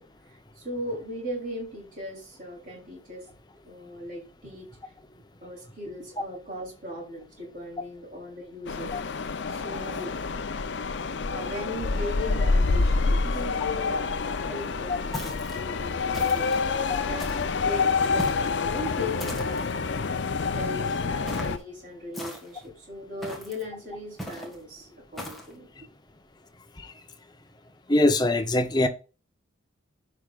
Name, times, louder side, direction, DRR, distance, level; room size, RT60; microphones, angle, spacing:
voice 1, 0.6-3.2 3.7-4.7 5.4-8.9 9.5-10.1 11.3-19.7 20.5-25.9, left 1 dB, 40° right, 3.5 m, -38 dB
sound 1, 8.7-21.6, left 4 dB, 60° left, 0.5 m, -27 dB
sound 2, 15.1-15.6 16.1-16.6 17.2-17.6 18.2-18.6 19.2-19.7 21.3-21.6 22.1-22.7 23.2-23.6 24.2-24.6 25.2-25.5, equal, ahead, 1.7 m, -38 dB
voice 2, 27.9-28.9, left 2 dB, 20° left, 0.8 m, -23 dB
14.5 x 5.1 x 2.4 m
head